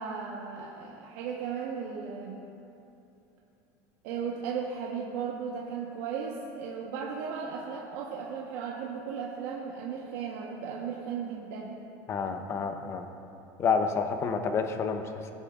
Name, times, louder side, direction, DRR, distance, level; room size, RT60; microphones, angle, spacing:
voice 1, 0.0-2.4 4.0-11.8, right 6 dB, 70° right, -2 dB, 1.0 m, -36 dB
voice 2, 12.1-13.1 13.6-15.3, left 5 dB, 30° left, 7 dB, 0.7 m, -29 dB
18.0 x 8.2 x 2.4 m, 2.8 s
cardioid pair, 150°, 10 cm